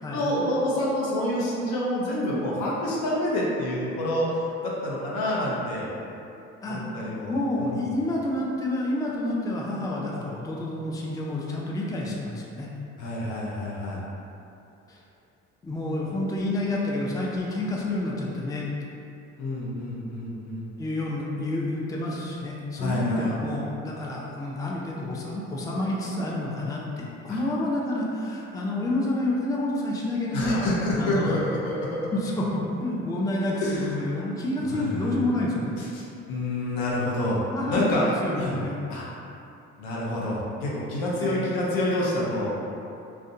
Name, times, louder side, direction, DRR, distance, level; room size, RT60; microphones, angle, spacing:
voice 1, 0.1-4.4 4.6-5.9 6.6-7.3 7.6-7.7 13.0-14.0 19.4-20.7 22.8-23.6 27.3-27.4 30.3-32.0 33.6-33.9 34.7-35.1 35.8-37.4 37.7-38.1 38.3-38.6 38.9-39.0 39.8-42.6, left 1 dB, 75° left, -5 dB, 0.7 m, -28 dB
voice 2, 7.3-12.7 14.9-15.0 15.6-18.7 20.8-30.7 31.0-31.3 32.1-35.7 37.5-38.8 41.2-41.4, left 1 dB, 10° left, -3 dB, 0.4 m, -29 dB
2.5 x 2.2 x 2.5 m, 2.7 s
hypercardioid pair, 60°, 35 cm